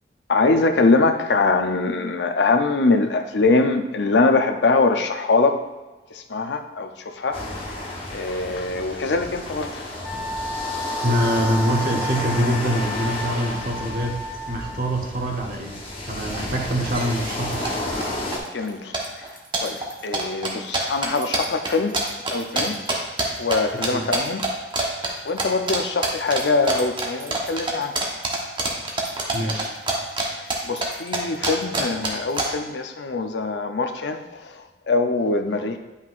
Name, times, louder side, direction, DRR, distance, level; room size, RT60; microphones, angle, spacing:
voice 1, 0.3-5.6 6.1-7.5 7.8-10.0 18.5-19.3 19.6-22.8 23.4-24.4 25.2-27.9 30.2-35.8, left 3 dB, 80° left, 6 dB, 0.6 m, -23 dB
sound 1, 7.3-18.4, left 1 dB, 30° left, 1.0 m, -32 dB
Wind instrument woodwind instrument, 10.0-15.0, equal, ahead, 1.8 m, -32 dB
voice 2, 11.0-14.2 14.5-15.7 16.1-17.9 23.9-24.0 29.3-29.7, equal, 50° right, 1 dB, 1.1 m, -24 dB
sound 2, 16.3-16.4 16.6-17.0 17.3-18.0 18.3-18.7 18.9-23.6 23.8-24.5 24.7-25.1 25.4-25.8 26.0-30.2 30.5-32.4, right 3 dB, 30° right, 1.0 m, -25 dB
9.6 x 5.6 x 2.5 m, 1.2 s
head